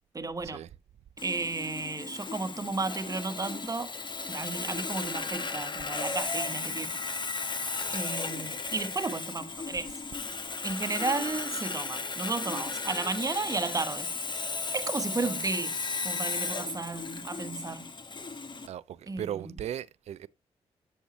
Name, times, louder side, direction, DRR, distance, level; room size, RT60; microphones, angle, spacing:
voice 1, 0.1-0.6 1.2-3.9 4.3-6.9 7.9-9.9 10.6-14.1 14.7-15.8 16.0-17.9 19.1-19.5, right 3 dB, 30° right, 1.1 m, -33 dB
Sawing, 1.2-18.7, left 4 dB, 40° left, 1.1 m, -35 dB
voice 2, 18.6-20.3, right 10 dB, 70° right, 0.4 m, -37 dB
8.2 x 6.4 x 3.0 m
supercardioid pair, 55°, 12 cm